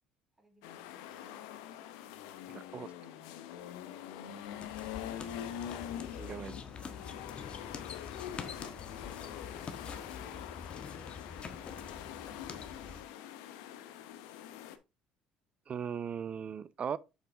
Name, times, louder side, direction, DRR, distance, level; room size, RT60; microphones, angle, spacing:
voice 1, 0.3-0.9 4.5-5.0 7.5-8.6 9.2-13.4, right 1 dB, 15° right, 3.9 m, -65 dB
sound 1, 0.6-14.8, left 10 dB, 80° left, 0.8 m, -44 dB
voice 2, 2.5-2.9 6.1-6.6 15.7-17.0, right 7 dB, 40° right, 0.5 m, -38 dB
sound 2, 4.4-13.0, left 5 dB, 35° left, 1.4 m, -46 dB
7.3 x 5.4 x 3.5 m
hypercardioid pair, 70°, 3 cm